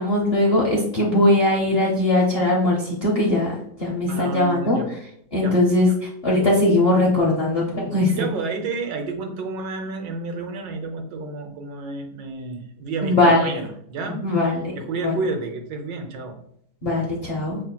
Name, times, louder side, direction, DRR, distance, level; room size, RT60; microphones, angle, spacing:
voice 1, 0.0-3.5 3.8-4.8 5.3-5.9 6.2-8.3 13.0-13.6 14.2-14.6 15.0-15.1 16.8-17.6, left 1 dB, 55° left, -3 dB, 0.7 m, -20 dB
voice 2, 4.1-4.9 5.4-5.6 7.7-16.4, right 3 dB, 80° right, 4 dB, 1.4 m, -31 dB
5.5 x 3.2 x 2.2 m, 0.69 s
omnidirectional pair, 1.9 m